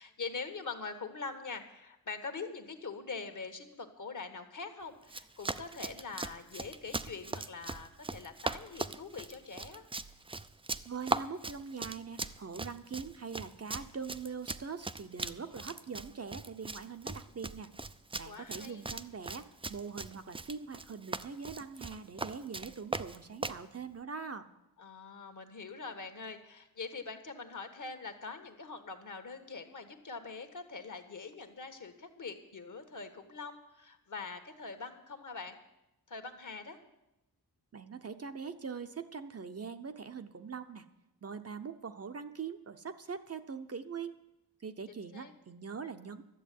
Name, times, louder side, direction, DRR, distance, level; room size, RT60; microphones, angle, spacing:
voice 1, 0.0-9.9 18.3-18.8 24.8-35.6 36.1-36.8 44.9-45.3, left 4 dB, 50° left, 7 dB, 1.4 m, -43 dB
Run, 5.0-23.6, right 3 dB, 15° right, 0.4 m, -40 dB
voice 2, 10.9-17.7 18.2-24.5 37.7-40.9 41.2-44.2 44.6-46.2, right 5 dB, 40° right, 8 dB, 0.7 m, -42 dB
12.5 x 7.6 x 9.2 m, 0.92 s
wide cardioid pair, 110°, 38 cm